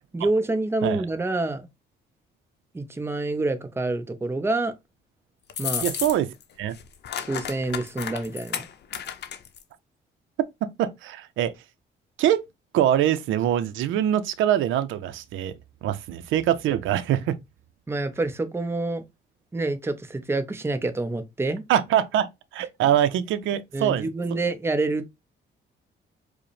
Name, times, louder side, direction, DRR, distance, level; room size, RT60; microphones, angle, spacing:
voice 1, 0.1-1.7 2.7-4.7 5.6-5.9 7.3-8.6 17.9-19.0 19.5-21.6 23.7-25.1, right 2 dB, 10° right, 0.6 m, -27 dB
sound 1, 5.5-6.4 6.7-9.6, left 8 dB, 60° left, 0.6 m, -32 dB
voice 2, 5.8-6.8 10.6-11.5 12.2-12.4 12.7-15.5 15.8-17.4 21.7-24.1, right 11 dB, 80° right, 0.5 m, -24 dB
4.7 x 2.1 x 3.2 m
cardioid pair, 90°, 20 cm